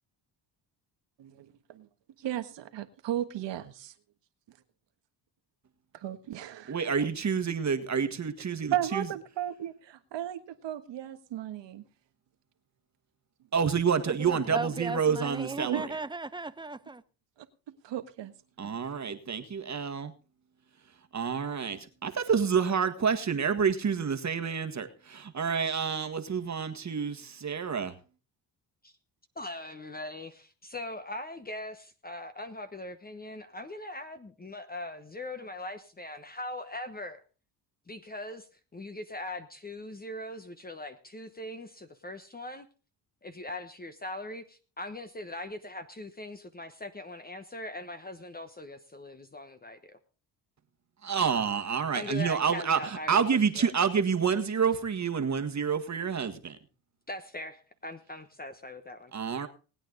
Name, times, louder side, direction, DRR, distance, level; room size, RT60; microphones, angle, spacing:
voice 1, 1.2-1.9 2.2-3.9 6.0-6.8 8.7-11.8 15.6-15.8 17.8-18.3 18.6-18.7, right 11 dB, 70° right, 1.5 m, -35 dB
voice 2, 6.7-9.1 13.5-15.9 18.6-20.1 21.1-27.9 51.0-56.6 59.1-59.5, right 6 dB, 40° right, 1.7 m, -28 dB
voice 3, 14.1-17.0, right 3 dB, 10° right, 0.8 m, -36 dB
voice 4, 29.4-37.2 37.9-42.7 43.2-50.0 51.9-53.7 57.1-59.1, left 1 dB, 20° left, 1.1 m, -41 dB
19.5 x 9.0 x 3.9 m
cardioid pair, 85°, 44 cm